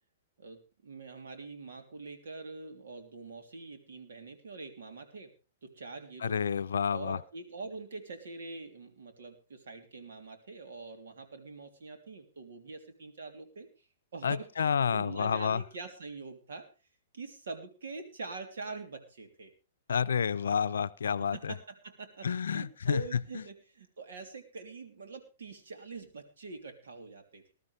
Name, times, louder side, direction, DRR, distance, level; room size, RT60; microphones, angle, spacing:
voice 1, 0.4-5.3 5.6-6.4 6.9-13.7 14.1-14.5 14.9-16.7 17.1-19.5 21.3-22.3 22.5-27.5, right 3 dB, 70° right, 5 dB, 3.2 m, -44 dB
voice 2, 6.2-7.2 14.2-15.6 19.9-21.5 22.2-23.2, left 7 dB, 75° left, 14 dB, 0.6 m, -29 dB
19.5 x 12.5 x 3.4 m, 0.32 s
hypercardioid pair, 115°, 0 cm